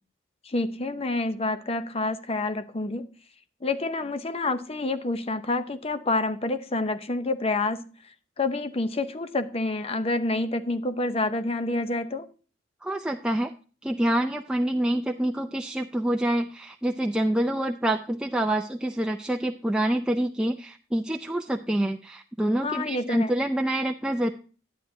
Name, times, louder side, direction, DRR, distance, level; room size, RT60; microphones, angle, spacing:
voice 1, 0.4-3.1 3.6-12.3 22.6-23.4, left 2 dB, 35° left, 0.7 m, -28 dB
voice 2, 12.8-13.5 13.8-24.3, right 1 dB, 5° right, 0.5 m, -26 dB
10.5 x 9.5 x 2.7 m
head